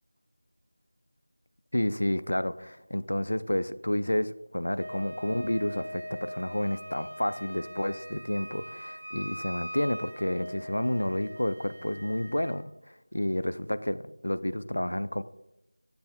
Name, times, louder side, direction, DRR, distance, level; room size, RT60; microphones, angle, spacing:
voice 1, 1.7-15.2, left 1 dB, 70° left, 14 dB, 0.4 m, -30 dB
Wind instrument woodwind instrument, 4.7-12.6, equal, 55° right, 2.9 m, -42 dB
9.7 x 6.8 x 2.4 m, 0.91 s
figure-of-eight pair, 170°, 0 cm